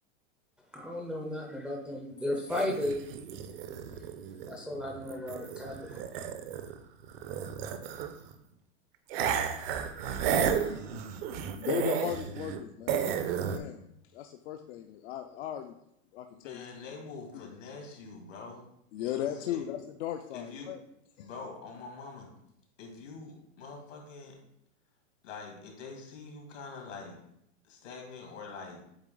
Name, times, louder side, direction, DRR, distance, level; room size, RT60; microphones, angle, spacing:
voice 1, 0.7-3.0 4.5-6.3, left 1 dB, 5° right, 0 dB, 0.5 m, -35 dB
sound 1, 2.5-6.8 7.0-8.3 9.1-12.6 12.9-13.6, right 8 dB, 55° right, 0.7 m, -33 dB
voice 2, 10.0-13.2 13.5-13.9 14.1-15.8 16.1-16.7 17.3-17.5 18.9-20.8 21.2-21.3, left 11 dB, 65° left, 5 dB, 0.5 m, -37 dB
voice 3, 16.3-18.7 19.0-19.7 20.3-20.7 21.2-22.3 22.8-24.4 25.2-27.2 27.6-28.8, left 4 dB, 90° left, 1 dB, 2.2 m, -45 dB
8.0 x 3.3 x 3.8 m, 0.76 s
supercardioid pair, 145°, 36 cm